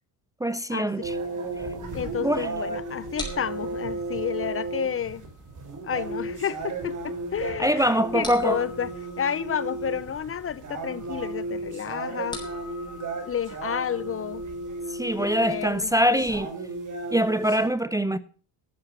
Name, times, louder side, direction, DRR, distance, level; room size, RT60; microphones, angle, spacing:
voice 1, 0.4-1.1 2.2-2.5 7.6-8.6 14.9-16.5 17.1-18.2, equal, 10° right, 0.5 m, -23 dB
sound 1, 1.0-17.7, right 3 dB, 45° right, 4.7 m, -35 dB
sound 2, 1.6-16.4, left 2 dB, 10° left, 5.5 m, -45 dB
voice 2, 1.9-5.3 5.8-8.9 9.2-12.4 13.2-14.4 15.1-16.3, left 8 dB, 35° left, 0.6 m, -31 dB
13.0 x 7.5 x 7.2 m
cardioid pair, 110°, 41 cm